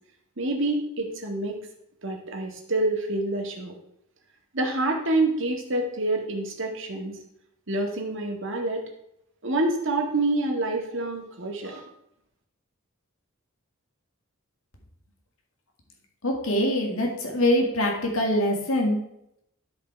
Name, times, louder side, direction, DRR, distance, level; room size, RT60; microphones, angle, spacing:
voice 1, 0.4-1.6 2.0-3.7 4.5-7.2 7.7-8.9 9.4-11.9, right 2 dB, 65° right, 2 dB, 1.9 m, -27 dB
voice 2, 16.2-19.0, left 1 dB, 85° left, 1 dB, 2.0 m, -24 dB
12.5 x 5.2 x 4.6 m, 0.77 s
head